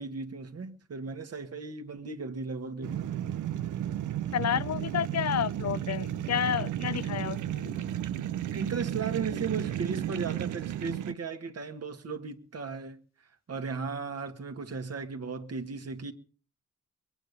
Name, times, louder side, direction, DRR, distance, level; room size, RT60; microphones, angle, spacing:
voice 1, 0.0-3.1 8.5-13.0 13.5-16.1, right 5 dB, 55° right, 1.8 m, -36 dB
sound 1, 2.8-11.1, right 11 dB, 85° right, 0.7 m, -33 dB
voice 2, 4.3-7.8, left 9 dB, 60° left, 0.7 m, -30 dB
22.0 x 9.0 x 6.8 m
cardioid pair, 75°, 30 cm